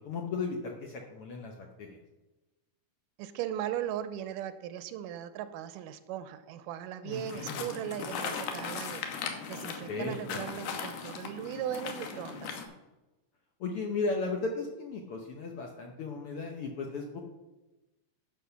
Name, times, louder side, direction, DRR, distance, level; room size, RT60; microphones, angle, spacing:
voice 1, 0.0-2.0 7.0-7.6 9.9-10.4 13.6-17.2, left 3 dB, 70° left, 2 dB, 1.4 m, -36 dB
voice 2, 3.2-9.0 9.5-12.6, right 10 dB, 90° right, 11 dB, 2.3 m, -38 dB
sound 1, 7.1-12.7, left 6 dB, 85° left, 2.7 m, -38 dB
11.0 x 6.1 x 5.8 m, 1.0 s
omnidirectional pair, 3.7 m